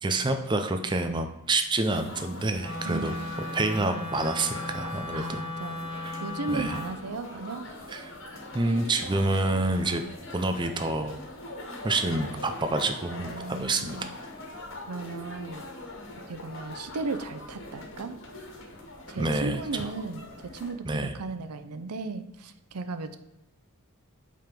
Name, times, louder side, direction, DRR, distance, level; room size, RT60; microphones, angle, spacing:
voice 1, 0.0-3.1 3.5-5.4 6.0-6.2 6.5-6.8 7.9-8.2 8.5-10.0 10.3-11.2 11.8-14.1 19.2-19.9 20.8-21.1, right 2 dB, 20° right, 7 dB, 0.5 m, -28 dB
sound 1, 1.9-20.7, left 2 dB, 60° left, 1.6 m, -42 dB
Wind instrument woodwind instrument, 2.6-7.0, left 2 dB, 25° left, 1.3 m, -36 dB
voice 2, 2.8-3.3 5.1-7.6 13.1-14.2 14.9-15.6 16.3-18.2 19.1-23.2, right 3 dB, 90° right, 11 dB, 0.6 m, -36 dB
8.4 x 3.7 x 5.1 m, 0.97 s
head